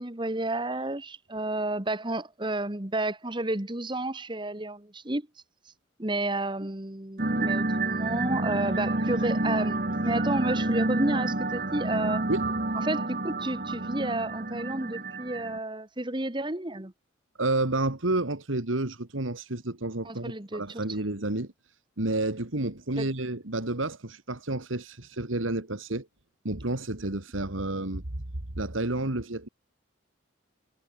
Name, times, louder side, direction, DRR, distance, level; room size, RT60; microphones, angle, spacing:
voice 1, 0.0-5.3 6.0-12.3 12.8-16.9 20.0-20.8 23.0-23.1, right 2 dB, 25° right, 1.5 m, -31 dB
sound 1, 7.2-15.6, right 2 dB, 45° right, 1.8 m, -29 dB
voice 2, 12.3-12.6 17.4-21.5 22.0-26.1 26.4-28.2 28.6-29.5, right 2 dB, 90° right, 2.3 m, -30 dB
head